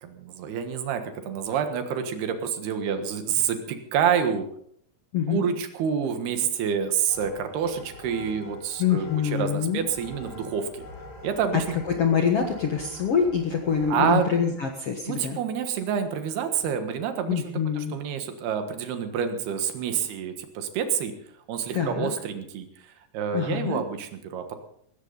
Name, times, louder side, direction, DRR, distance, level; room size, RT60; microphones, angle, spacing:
voice 1, 0.0-4.5 5.3-10.9 11.2-11.8 13.9-14.3 15.1-17.4 17.8-21.1 21.5-22.7 23.1-24.6, right 7 dB, 70° right, 7 dB, 3.3 m, -28 dB
voice 2, 5.1-5.5 8.8-9.8 11.9-15.4 17.3-18.0 21.7-22.1 23.3-23.8, left 7 dB, 75° left, 2 dB, 1.3 m, -25 dB
sound 1, 7.1-14.5, left 2 dB, 55° left, 5.0 m, -44 dB
19.0 x 16.0 x 4.0 m, 0.67 s
omnidirectional pair, 5.1 m